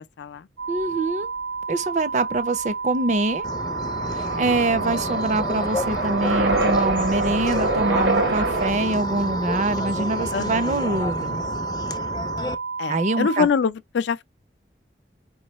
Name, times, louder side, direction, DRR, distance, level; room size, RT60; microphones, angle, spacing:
sound 1, 0.6-13.4, right 5 dB, 70° right, 0.9 m, -31 dB
voice 1, 0.7-1.3 1.7-3.4 4.1-11.4 12.9-13.5, right 2 dB, 40° right, 0.5 m, -24 dB
sound 2, 3.4-12.5, left 2 dB, 20° left, 0.4 m, -31 dB
sound 3, 3.6-8.7, right 2 dB, 90° right, 1.6 m, -25 dB
voice 2, 10.3-10.8 12.8-14.2, left 6 dB, 85° left, 0.4 m, -24 dB
4.6 x 3.1 x 3.0 m
head